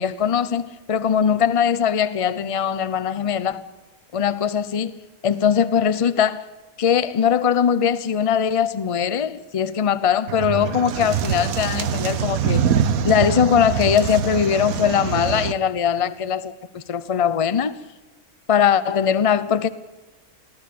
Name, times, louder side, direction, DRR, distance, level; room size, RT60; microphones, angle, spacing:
voice 1, 0.0-3.7 4.1-5.0 5.2-6.5 6.8-12.7 13.0-17.8 18.5-19.7, left 8 dB, 30° left, 0.6 m, -21 dB
sound 1, 10.3-15.5, right 8 dB, 70° right, 1.3 m, -24 dB
23.0 x 15.5 x 8.6 m
omnidirectional pair, 1.6 m